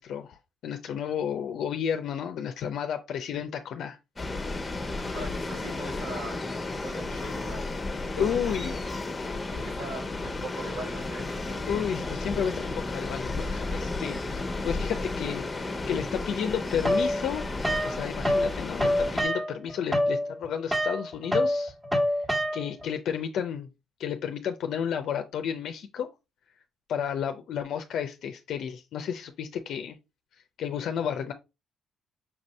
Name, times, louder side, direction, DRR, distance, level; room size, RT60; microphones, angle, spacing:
voice 1, 0.0-4.0 8.2-8.8 11.7-17.5 17.8-21.7 22.5-23.7 24.0-26.1 26.9-30.0 30.6-31.3, left 8 dB, 75° left, 0.4 m, -32 dB
sound 1, 4.2-19.2, left 2 dB, 20° left, 0.9 m, -33 dB
voice 2, 5.1-6.4 6.8-7.7 8.0-8.7 9.5-11.6, right 2 dB, 80° right, 2.6 m, -41 dB
sound 2, 16.8-18.5 18.8-22.9, equal, 15° right, 1.3 m, -26 dB
5.8 x 2.6 x 3.0 m
cardioid pair, 90°, 0 cm